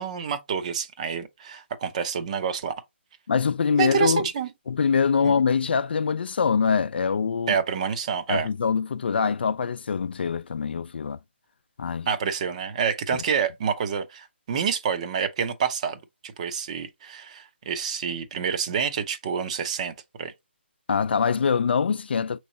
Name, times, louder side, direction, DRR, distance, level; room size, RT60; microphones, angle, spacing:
voice 1, 0.0-2.7 3.8-4.5 5.2-5.3 7.5-8.5 12.1-20.3, right 7 dB, 35° right, 0.6 m, -28 dB
voice 2, 3.3-4.2 4.7-7.6 8.3-11.2 11.8-12.1 13.1-13.2 20.9-22.4, left 6 dB, 55° left, 0.4 m, -24 dB
6.1 x 3.1 x 2.7 m
figure-of-eight pair, 150°, 6 cm